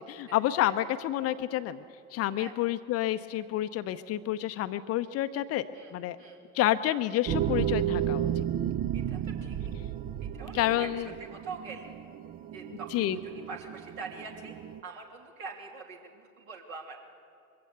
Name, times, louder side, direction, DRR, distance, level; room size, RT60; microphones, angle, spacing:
voice 1, 0.0-1.8 2.1-5.6 5.9-6.2 6.5-8.3 10.5-11.1 12.9-13.2, left 13 dB, 35° left, 11 dB, 0.7 m, -29 dB
sound 1, 7.3-14.8, right 10 dB, 20° right, 0.4 m, -33 dB
voice 2, 8.9-9.6 10.3-11.9 12.5-14.5 14.8-17.0, right 4 dB, 60° right, 1 dB, 3.2 m, -44 dB
22.0 x 15.5 x 8.1 m, 2.4 s
figure-of-eight pair, 75°, 44 cm